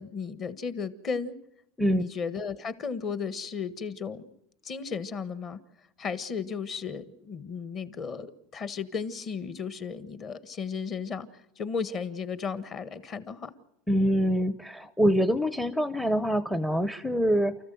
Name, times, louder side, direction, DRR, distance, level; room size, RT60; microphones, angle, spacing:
voice 1, 0.0-1.3 1.9-4.3 4.6-5.6 6.0-13.5, left 5 dB, 30° left, 13 dB, 1.5 m, -34 dB
voice 2, 13.9-17.6, equal, ahead, 12 dB, 0.8 m, -25 dB
30.0 x 14.5 x 7.8 m, 0.87 s
supercardioid pair, 155°, 0 cm